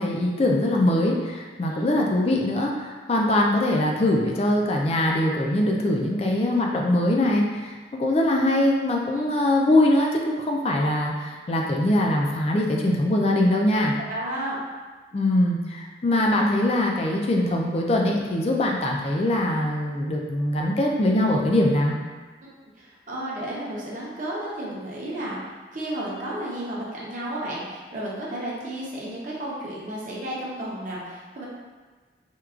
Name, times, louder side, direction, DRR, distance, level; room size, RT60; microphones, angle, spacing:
voice 1, 0.0-13.9 15.1-22.0, left 1 dB, 35° left, 0 dB, 0.3 m, -22 dB
voice 2, 14.1-14.6 22.8-25.4 25.7-31.5, right 1 dB, 45° right, -5 dB, 0.7 m, -32 dB
4.4 x 2.3 x 2.4 m, 1.4 s
head